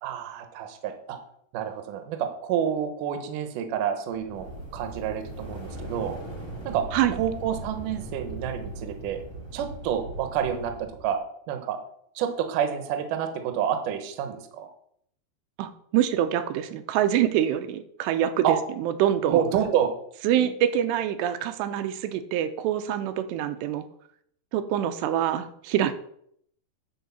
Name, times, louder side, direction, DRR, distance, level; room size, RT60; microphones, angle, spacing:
voice 1, 0.0-1.2 1.5-4.5 4.7-6.2 6.7-6.8 7.1-9.2 9.5-11.2 11.5-11.8 12.2-14.7 18.4-18.6 19.3-19.9, right 9 dB, 70° right, 7 dB, 2.2 m, -28 dB
sound 1, 4.1-11.1, right 1 dB, 10° left, 1.4 m, -39 dB
voice 2, 15.6-18.5 18.8-19.4 20.2-23.8 24.5-25.9, right 11 dB, 85° right, 10 dB, 2.9 m, -25 dB
10.5 x 4.6 x 7.1 m, 0.68 s
omnidirectional pair, 4.9 m